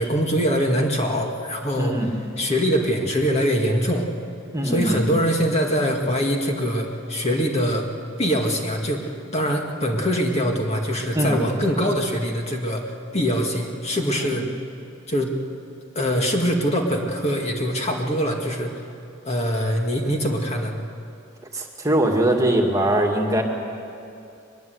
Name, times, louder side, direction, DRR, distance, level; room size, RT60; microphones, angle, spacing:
voice 1, 0.0-2.1 2.4-4.1 4.6-7.9 8.2-12.8 13.1-14.5 15.1-15.3 16.0-18.9 19.3-20.8, equal, 35° left, 2 dB, 2.1 m, -23 dB
voice 2, 1.8-2.1 4.5-5.0 11.1-11.4 14.2-14.4 21.5-23.4, right 1 dB, 15° right, 1 dB, 2.1 m, -21 dB
22.5 x 22.0 x 8.1 m, 2.5 s
head